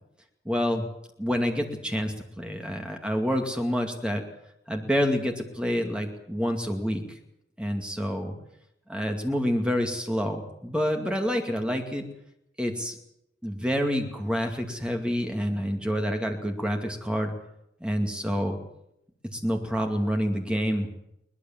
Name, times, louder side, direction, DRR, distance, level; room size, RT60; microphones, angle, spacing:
voice 1, 0.4-0.9 1.2-4.2 4.7-7.0 7.6-8.3 8.9-12.0 12.6-13.0 13.4-17.3 17.8-18.6 19.3-20.9, equal, 5° right, 3 dB, 2.4 m, -28 dB
22.0 x 19.5 x 7.4 m, 0.80 s
head